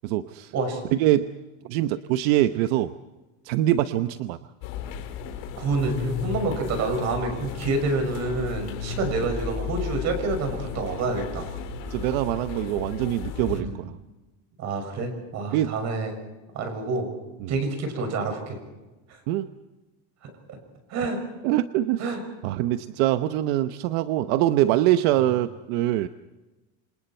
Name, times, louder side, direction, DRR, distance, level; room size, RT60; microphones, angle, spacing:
voice 1, 0.0-0.5 1.0-1.3 1.6-2.9 3.4-4.4 11.9-14.0 15.5-15.8 17.4-17.5 19.3-19.5 21.4-22.0 22.4-26.1, right 13 dB, 80° right, 10 dB, 1.0 m, -24 dB
sound 1, 4.6-13.6, left 6 dB, 65° left, 4.3 m, -34 dB
voice 2, 5.6-11.5 11.9-12.0 13.5-13.8 14.6-16.1 16.5-17.1 17.5-18.6 19.1-19.2 20.2-20.3 20.9-21.2 22.0-22.2 25.2-25.3, right 3 dB, 40° right, 5 dB, 6.3 m, -28 dB
27.5 x 27.5 x 4.5 m, 1.1 s
cardioid pair, 175°, 40 cm